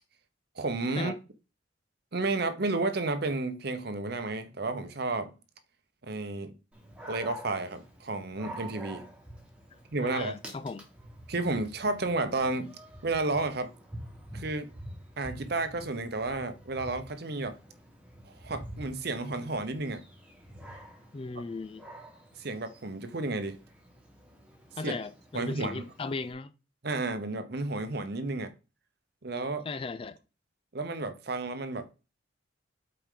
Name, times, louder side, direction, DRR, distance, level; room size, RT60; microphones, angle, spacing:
voice 1, 0.6-1.1 2.1-5.3 6.0-6.5 7.1-9.1 9.9-10.4 11.3-13.7 14.3-14.7 15.2-17.6 18.3-20.0 22.4-23.6 24.8-24.9 25.3-25.8 26.8-28.5 29.2-29.6 30.7-31.9, right 3 dB, 50° right, 0.8 m, -32 dB
Dog, 6.7-26.3, right 1 dB, 5° right, 1.4 m, -48 dB
voice 2, 10.0-10.9 21.1-21.8 24.8-26.5 29.7-30.2, left 3 dB, 25° left, 0.3 m, -37 dB
8.2 x 4.4 x 3.8 m
head